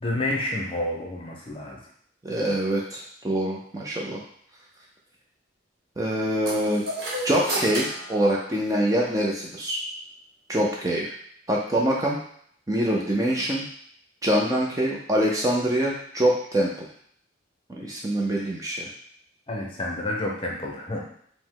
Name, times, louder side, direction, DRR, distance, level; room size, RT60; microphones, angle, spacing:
voice 1, 0.0-1.8 19.5-21.0, left 1 dB, 25° left, -1 dB, 0.7 m, -29 dB
voice 2, 2.2-4.2 6.0-6.8 7.2-9.8 10.5-11.1 11.5-12.2 12.7-13.6 14.2-16.9 17.7-18.9, right 1 dB, 15° right, -3 dB, 0.5 m, -24 dB
sound 1, 6.5-9.1, right 1 dB, 50° right, 1.1 m, -32 dB
5.0 x 2.1 x 3.7 m, 0.64 s
head